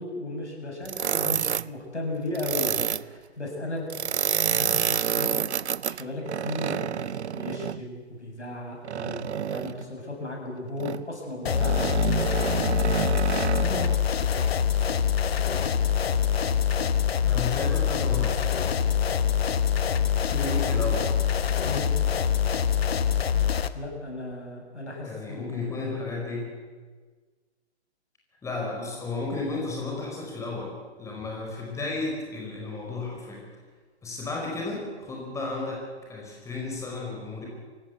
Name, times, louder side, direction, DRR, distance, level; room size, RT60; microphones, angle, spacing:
voice 1, 0.0-3.9 4.3-5.5 5.8-12.3 13.3-14.0 20.4-20.5 21.6-21.9 23.7-26.0, left 2 dB, 80° left, 0 dB, 7.6 m, -36 dB
sound 1, 0.9-1.7 2.3-3.0 3.9-7.8 8.8-9.8 10.8-11.1 11.5-13.9, right 8 dB, 75° right, 0.6 m, -28 dB
sound 2, 11.5-23.7, left 8 dB, 60° left, 1.2 m, -24 dB
voice 2, 17.2-18.6 20.2-21.1 25.0-26.5 28.4-33.4 34.0-37.5, left 3 dB, 10° left, -2 dB, 4.9 m, -33 dB
23.0 x 17.0 x 8.2 m, 1.5 s
figure-of-eight pair, 125°, 34 cm